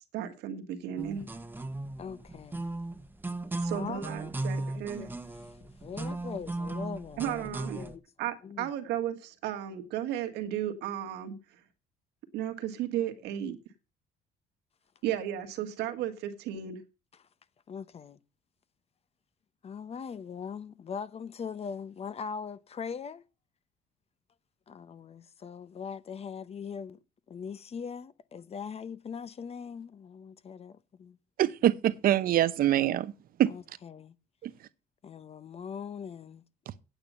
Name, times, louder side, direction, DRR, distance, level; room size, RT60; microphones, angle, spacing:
voice 1, 0.1-1.2 3.6-5.1 7.2-7.8 8.2-11.3 12.3-13.6 15.0-16.8, right 10 dB, 85° right, 1.7 m, -34 dB
sound 1, 1.0-8.0, right 2 dB, 10° right, 1.0 m, -37 dB
voice 2, 2.0-2.6 3.7-8.0 8.4-8.7 17.2-17.3 17.7-18.2 19.6-23.2 24.7-27.0 27.3-31.2 33.5-34.1 35.0-36.4, left 6 dB, 35° left, 0.8 m, -41 dB
voice 3, 31.4-33.1 33.4-33.5 34.4-34.5 36.7-36.8, right 12 dB, 60° right, 0.8 m, -24 dB
8.9 x 8.8 x 5.6 m
cardioid pair, 110°, 17 cm